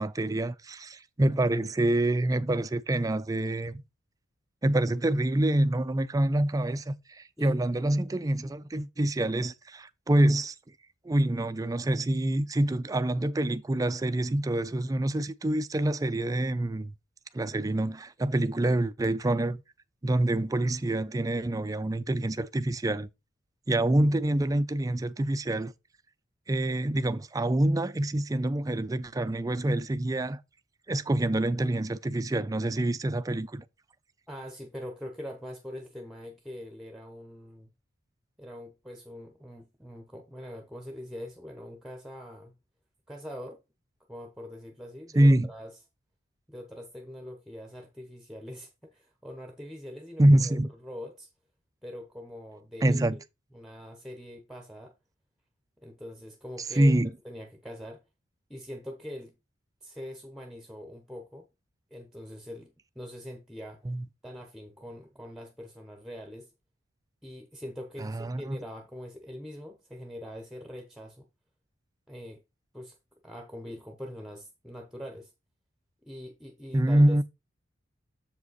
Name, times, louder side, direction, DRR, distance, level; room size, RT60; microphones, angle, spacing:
voice 1, 0.0-3.8 4.6-10.5 11.0-16.9 17.3-19.6 20.0-23.1 23.7-25.7 26.5-30.4 30.9-33.6 45.1-45.5 50.2-50.7 52.8-53.2 56.7-57.1 63.9-64.0 68.0-68.6 76.7-77.2, right 1 dB, 15° right, 0.4 m, -26 dB
voice 2, 34.3-37.7 38.4-42.5 43.1-43.6 44.1-45.7 46.5-50.5 50.8-51.3 51.8-53.2 53.5-54.9 55.8-57.0 57.2-58.0 58.5-59.3 59.8-61.5 61.9-63.8 64.2-66.5 67.2-71.3 72.1-72.4 72.7-73.0 73.2-75.3 76.0-77.2, equal, ahead, 0.8 m, -43 dB
7.3 x 5.1 x 4.0 m
head